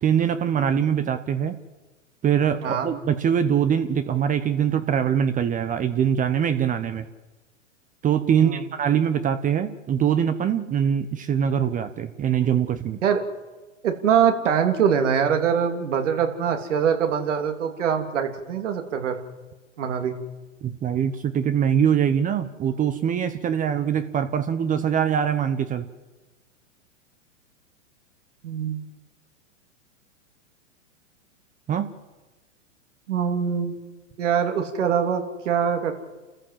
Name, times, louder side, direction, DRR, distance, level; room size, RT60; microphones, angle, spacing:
voice 1, 0.0-1.6 2.2-7.1 8.0-13.0 20.6-25.9 31.7-31.9, right 8 dB, 20° right, 10 dB, 1.0 m, -23 dB
voice 2, 13.8-19.2 19.8-20.1 28.4-28.8 33.1-33.8 34.2-35.9, right 7 dB, 70° right, 5 dB, 3.1 m, -23 dB
28.5 x 14.5 x 7.6 m, 1.2 s
hypercardioid pair, 115°, 38 cm